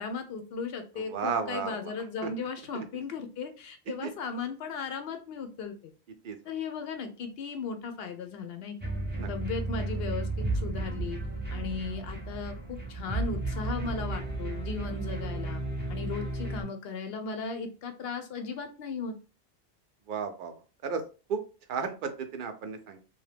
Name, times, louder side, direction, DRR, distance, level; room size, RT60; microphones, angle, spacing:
voice 1, 0.0-5.9 6.5-8.9 9.3-11.2 11.5-15.6 15.9-19.1, left 5 dB, 70° left, 7 dB, 0.8 m, -36 dB
voice 2, 1.0-1.9 2.2-2.3 2.7-2.8 4.0-4.1 6.2-6.4 9.2-9.3 14.9-15.1 20.1-20.5 20.8-21.0 21.3-21.4 21.7-23.0, right 6 dB, 60° right, 7 dB, 0.6 m, -33 dB
sound 1, 8.8-16.6, right 2 dB, 10° right, 0.6 m, -33 dB
2.7 x 2.2 x 3.3 m, 0.34 s
omnidirectional pair, 1.1 m